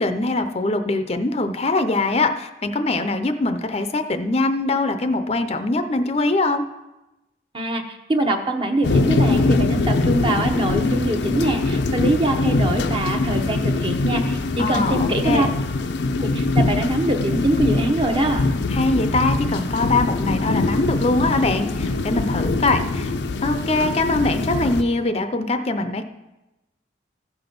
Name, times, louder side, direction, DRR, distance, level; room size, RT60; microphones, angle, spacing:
voice 1, 0.0-6.6 14.6-15.5 18.7-23.1 23.4-26.0, left 2 dB, 35° left, 8 dB, 0.6 m, -22 dB
voice 2, 7.5-15.5 16.2-18.4, right 1 dB, 30° right, 4 dB, 0.9 m, -23 dB
sound 1, 8.8-24.8, left 3 dB, 85° left, 0.6 m, -23 dB
14.5 x 6.0 x 5.2 m, 1.0 s
head